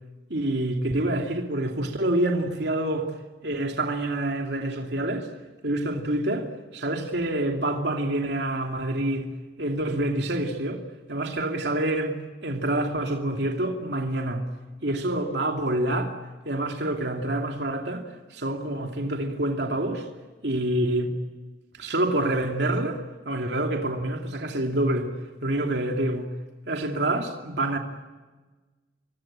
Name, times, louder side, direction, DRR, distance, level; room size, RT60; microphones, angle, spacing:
voice 1, 0.3-3.1 3.4-5.3 5.6-9.3 9.6-10.8 11.1-14.4 14.8-16.1 16.4-20.1 20.4-21.2 21.8-23.0 23.3-25.1 25.4-26.3 26.7-27.8, right 1 dB, 70° right, 2.7 m, -27 dB
27.0 x 23.5 x 8.9 m
head